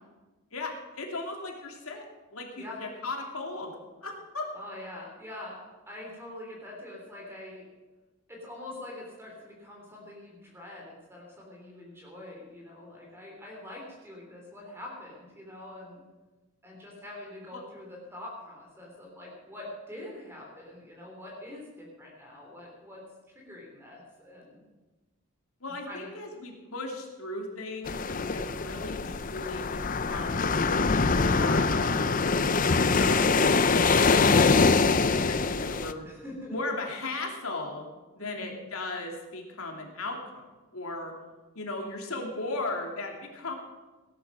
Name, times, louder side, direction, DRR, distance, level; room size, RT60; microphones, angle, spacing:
voice 1, 0.5-2.0 2.3-3.7 4.0-4.5 17.5-17.6 25.6-28.0 28.3-30.5 31.2-32.5 32.9-33.4 35.3-36.1 36.5-37.8 38.1-40.5 40.7-41.1 41.5-43.5, left 2 dB, 75° left, 1 dB, 2.9 m, -37 dB
voice 2, 4.5-5.6 5.9-7.6 8.3-16.0 16.6-23.0 23.3-24.6 25.9-26.1 36.0-36.5 38.2-38.5, left 1 dB, 10° right, -2 dB, 3.3 m, -44 dB
sound 1, 27.9-35.9, left 4 dB, 35° left, 0.6 m, -24 dB
18.0 x 11.0 x 6.2 m, 1.2 s
head